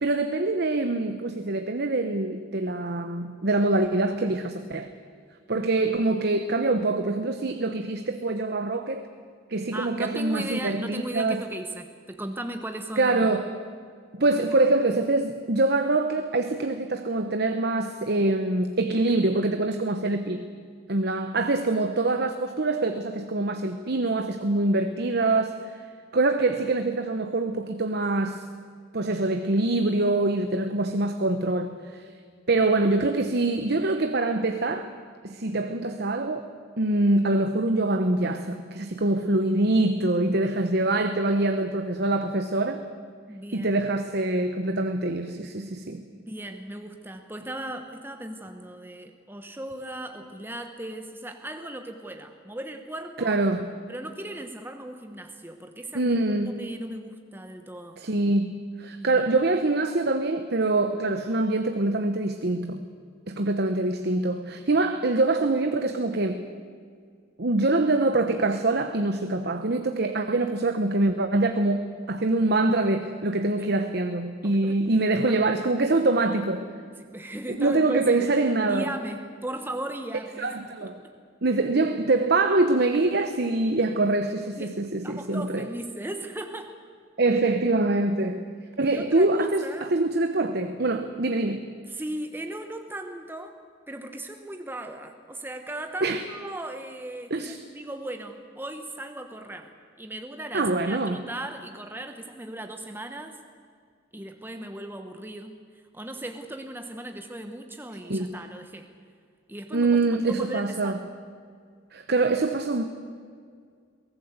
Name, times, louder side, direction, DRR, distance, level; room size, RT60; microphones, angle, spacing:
voice 1, 0.0-4.9 5.5-9.1 9.5-11.4 13.0-13.5 14.2-20.5 20.9-25.5 26.1-28.5 28.9-32.1 32.5-34.9 35.2-36.4 36.8-42.8 43.5-46.0 53.2-53.7 55.9-56.6 58.0-62.8 63.3-66.5 67.4-71.8 72.1-76.7 77.5-78.9 80.4-81.0 81.4-85.6 87.2-88.5 88.8-91.7 96.0-96.2 97.3-97.6 100.5-101.2 108.1-108.4 109.7-111.0 111.9-112.8, right 2 dB, 55° right, 8 dB, 1.0 m, -24 dB
voice 2, 9.7-13.4 14.2-14.3 43.3-43.7 46.1-53.4 53.9-56.2 56.5-58.0 59.0-59.2 73.6-73.7 74.4-74.8 75.3-75.5 77.0-78.4 78.6-80.9 84.6-86.7 88.8-89.9 91.9-93.6 93.9-99.7 100.0-103.4 104.1-108.9 109.5-111.0, right 1 dB, 10° right, 6 dB, 1.1 m, -37 dB
23.0 x 18.0 x 8.1 m, 2.1 s
head